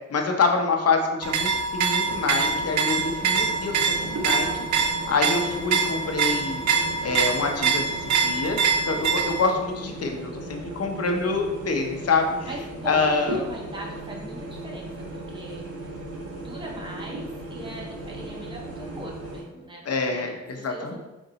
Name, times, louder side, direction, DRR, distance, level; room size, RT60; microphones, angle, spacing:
voice 1, 0.1-6.6 7.0-8.6 8.9-12.3 12.9-13.4 19.9-21.0, left 4 dB, 55° left, 3 dB, 0.8 m, -26 dB
sound 1, 1.2-9.5, right 5 dB, 75° right, 0.5 m, -25 dB
sound 2, 2.0-19.4, right 1 dB, 55° right, 0.9 m, -37 dB
voice 2, 12.4-21.0, right 2 dB, 15° right, -3 dB, 1.1 m, -40 dB
4.0 x 2.6 x 3.9 m, 1.0 s
cardioid pair, 55°, 29 cm